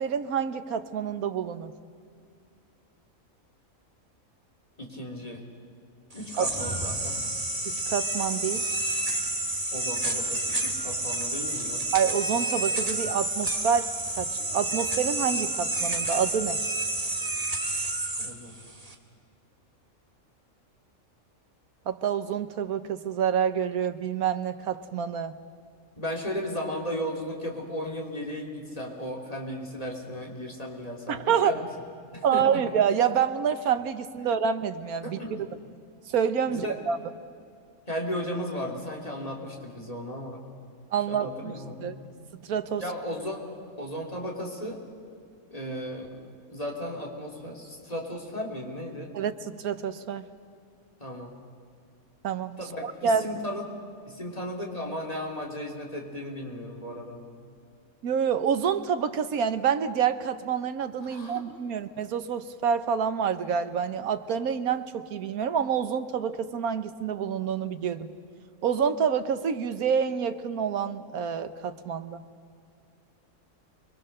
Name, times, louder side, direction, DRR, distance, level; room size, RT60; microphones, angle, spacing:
voice 1, 0.0-1.7 6.4-6.5 7.6-8.6 11.9-13.9 14.2-16.6 21.9-25.4 31.1-31.5 32.2-35.2 36.1-37.0 40.9-41.5 41.8-41.9 42.4-42.8 49.1-50.3 52.2-53.3 58.0-68.1 68.6-72.2, right 7 dB, 85° right, 11 dB, 1.4 m, -27 dB
voice 2, 4.8-5.4 6.1-7.2 9.7-11.8 18.2-18.5 26.0-31.7 32.1-32.6 35.0-35.4 36.5-36.8 37.9-40.4 41.1-41.9 42.8-43.5 43.8-44.8 45.5-46.1 46.5-49.2 51.0-51.3 52.6-53.6 54.0-57.2 61.0-61.4, equal, 25° left, 0 dB, 3.2 m, -35 dB
sound 1, 6.1-18.9, right 2 dB, 25° right, 1.9 m, -30 dB
29.0 x 22.0 x 6.6 m, 2.3 s
omnidirectional pair, 1.5 m